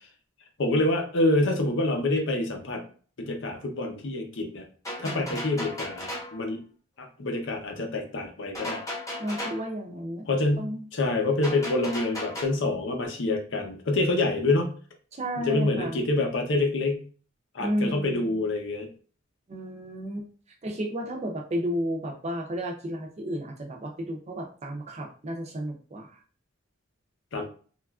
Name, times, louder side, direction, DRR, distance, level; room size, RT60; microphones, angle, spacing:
voice 1, 0.6-2.8 3.2-4.6 5.0-6.6 7.0-8.8 10.3-14.7 15.4-17.0 17.5-18.9 27.3-27.5, left 2 dB, 65° left, 3 dB, 0.6 m, -26 dB
sound 1, 4.9-6.4 8.5-9.7 11.4-12.5, left 1 dB, 15° left, 0.9 m, -35 dB
voice 2, 5.0-5.3 9.2-10.2 10.6-10.8 15.1-16.0 17.6-18.4 19.5-20.3 20.6-26.1, equal, 35° right, 2 dB, 0.5 m, -32 dB
3.1 x 2.4 x 2.3 m, 0.41 s
head